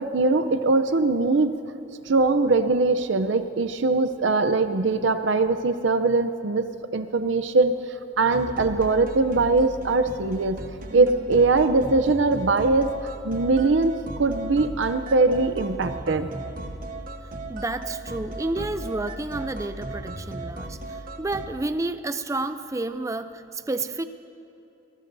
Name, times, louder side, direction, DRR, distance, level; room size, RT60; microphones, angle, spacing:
voice 1, 0.0-1.6 2.1-6.7 6.9-7.7 8.2-10.6 10.9-12.9 13.2-16.3, right 3 dB, 65° right, 10 dB, 0.6 m, -21 dB
sound 1, 8.3-21.5, right 2 dB, 45° right, 1.1 m, -36 dB
voice 2, 17.5-24.1, right 2 dB, 15° right, 10 dB, 0.4 m, -30 dB
26.0 x 19.5 x 2.7 m, 2.8 s
head